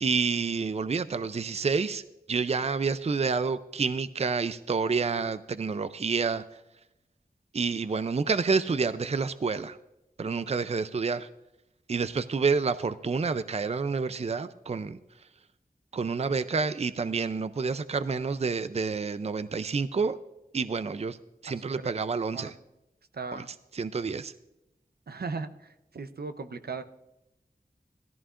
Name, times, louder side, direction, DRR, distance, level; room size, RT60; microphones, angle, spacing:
voice 1, 0.0-2.0 2.3-6.4 7.5-9.8 10.2-11.3 11.9-15.0 15.9-20.2 20.5-21.2 21.4-22.5 23.3-23.4 23.7-24.3, right 4 dB, 40° right, 13 dB, 0.4 m, -28 dB
voice 2, 23.1-23.5 25.1-26.8, right 4 dB, 85° right, 9 dB, 0.7 m, -37 dB
17.5 x 14.0 x 2.5 m, 0.91 s
wide cardioid pair, 60°, 16 cm